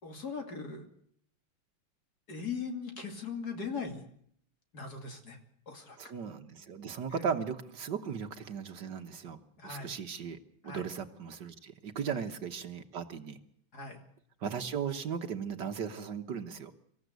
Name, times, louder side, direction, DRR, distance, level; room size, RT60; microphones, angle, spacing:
voice 1, 0.0-0.9 2.3-4.1 4.7-5.4 5.7-6.0 7.1-7.3 9.6-10.0 10.6-10.9 12.1-12.2 13.7-14.0, left 5 dB, 50° left, 4 dB, 3.1 m, -39 dB
voice 2, 6.0-9.4 9.6-10.4 10.6-13.4 14.4-16.7, right 7 dB, 60° right, 7 dB, 1.8 m, -37 dB
25.0 x 14.5 x 8.1 m, 0.67 s
omnidirectional pair, 2.2 m